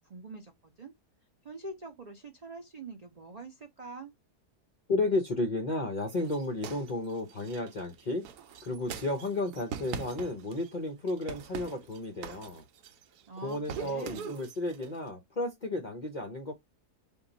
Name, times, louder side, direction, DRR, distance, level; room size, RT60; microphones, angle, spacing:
voice 1, 0.1-0.5 0.8-0.9 1.4-4.1 13.3-14.3, right 3 dB, 65° right, 0.4 m, -44 dB
voice 2, 4.9-8.2 8.6-12.6 13.4-16.5, left 2 dB, 55° left, 0.5 m, -33 dB
sound 1, 6.1-10.8 11.1-13.2 13.5-15.0, right 7 dB, 85° right, 1.1 m, -42 dB
3.6 x 2.3 x 3.8 m
omnidirectional pair, 1.7 m